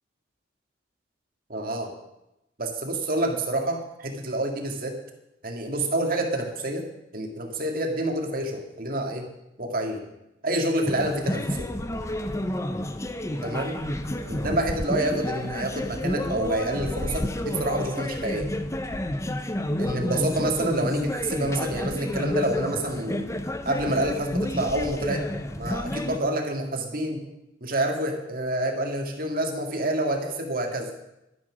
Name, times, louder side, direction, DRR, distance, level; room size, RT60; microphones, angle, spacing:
voice 1, 1.5-1.9 2.6-5.0 5.4-6.9 7.1-9.3 9.6-10.0 10.4-11.7 13.4-13.8 14.3-18.5 19.8-23.3 23.6-25.3 25.6-27.2 27.6-30.9, right 1 dB, 50° right, 3 dB, 2.0 m, -28 dB
sound 1, 10.9-26.2, left 1 dB, 15° left, 0.7 m, -30 dB
12.0 x 9.8 x 6.2 m, 0.90 s
head